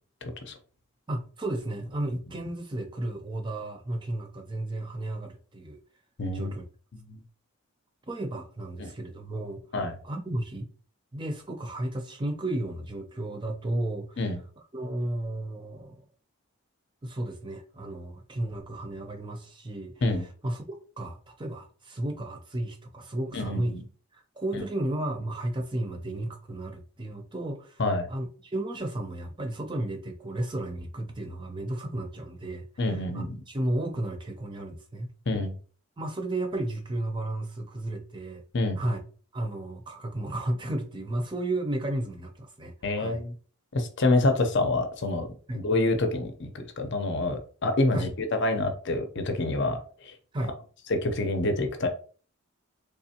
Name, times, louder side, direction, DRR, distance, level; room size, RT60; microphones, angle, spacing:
voice 1, 0.2-0.5 6.2-6.5 6.9-7.2 8.8-8.9 9.7-9.9 14.2-14.4 20.0-20.2 23.3-23.8 27.8-28.1 32.8-33.4 35.3-35.5 38.5-38.8 42.8-43.3 43.7-45.3 45.5-48.1 48.4-50.1 50.9-51.9, left 2 dB, 50° left, 0.6 m, -27 dB
voice 2, 1.1-5.8 6.3-6.6 8.1-9.6 10.0-10.7 11.1-14.2 14.7-16.0 17.0-20.0 20.4-23.8 24.1-27.8 28.1-35.1 36.0-38.4 38.8-39.0 39.3-43.2 45.5-45.7 47.9-48.1 50.3-50.5, right 1 dB, 20° right, 0.5 m, -33 dB
3.6 x 3.2 x 2.8 m
head